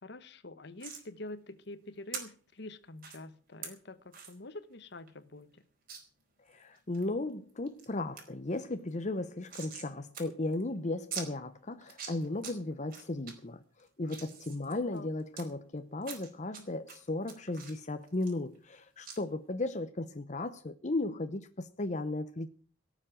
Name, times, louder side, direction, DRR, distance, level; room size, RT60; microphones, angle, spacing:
voice 1, 0.0-5.6 14.6-15.1, left 2 dB, 65° left, 1.3 m, -46 dB
sound 1, 0.8-1.0 2.1-2.2 3.0-3.2 3.6-3.7 4.1-4.3 4.7-4.8 5.1-5.2 5.9-6.0 6.5-7.1 7.5-7.9 8.2-8.3 8.5-9.9 10.1-10.2 10.5-10.6 11.1-11.3 11.8-12.5 12.9-13.3 13.8-15.4 16.0-16.6 16.9-18.8 19.1-19.2, right 6 dB, 50° right, 4.8 m, -43 dB
voice 2, 6.5-13.6 14.0-22.5, left 2 dB, 40° left, 0.9 m, -35 dB
18.0 x 7.4 x 8.9 m
head